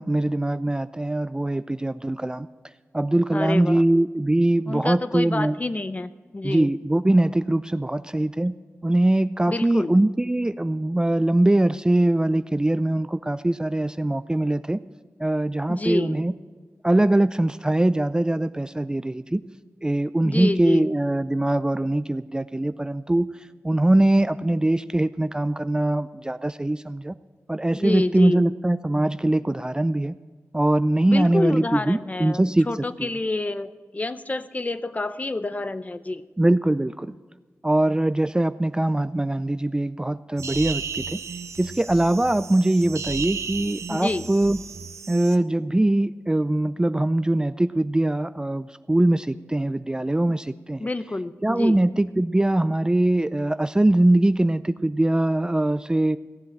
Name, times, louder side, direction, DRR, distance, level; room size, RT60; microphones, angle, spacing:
voice 1, 0.0-2.5 2.9-5.6 6.4-8.5 8.8-14.8 15.2-16.3 16.8-19.4 19.8-23.3 23.6-27.2 27.5-30.2 30.5-32.7 33.0-33.1 36.4-37.1 37.6-41.2 41.6-44.6 45.1-50.9 51.4-56.2, right 1 dB, 15° right, 14 dB, 0.4 m, -22 dB
voice 2, 3.3-3.8 4.7-6.7 9.5-9.9 15.7-16.2 20.2-20.9 27.7-28.5 31.1-36.2 43.9-44.3 50.8-51.8, left 2 dB, 30° left, 13 dB, 0.7 m, -28 dB
sound 1, 40.4-45.4, right 6 dB, 80° right, 0.7 m, -34 dB
15.5 x 7.5 x 8.6 m, 1.4 s
cardioid pair, 65°, 5 cm